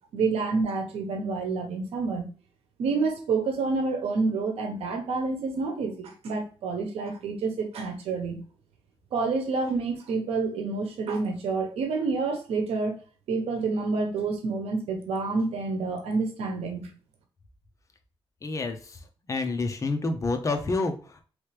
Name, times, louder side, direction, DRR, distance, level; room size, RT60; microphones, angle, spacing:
voice 1, 0.1-2.3 2.8-8.4 9.1-13.0 13.3-16.9, right 4 dB, 90° right, 4 dB, 0.9 m, -28 dB
voice 2, 18.4-19.0 19.3-21.2, left 3 dB, 30° left, 6 dB, 0.8 m, -28 dB
4.3 x 3.2 x 3.3 m, 0.37 s
cardioid pair, 105°, 10 cm